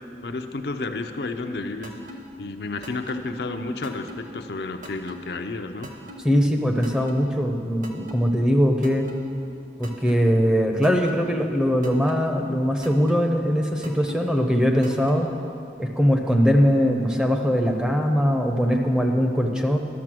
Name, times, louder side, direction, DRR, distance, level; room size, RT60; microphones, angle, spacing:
voice 1, 0.2-1.9 2.4-5.9, left 3 dB, 65° left, 6 dB, 0.5 m, -31 dB
sound 1, 1.8-2.2 2.8-3.2 3.8-4.2 4.8-5.2 5.8-6.2 6.8-7.2 7.8-8.2 8.8-9.2 9.8-10.2 10.8-11.2 11.8-12.2 12.8-13.2 13.8-14.2 14.8-15.2, equal, 45° right, 1.0 m, -40 dB
voice 2, 6.2-9.1 9.8-15.3 15.8-19.8, equal, 5° right, 3 dB, 0.6 m, -21 dB
12.0 x 6.7 x 6.1 m, 2.5 s
head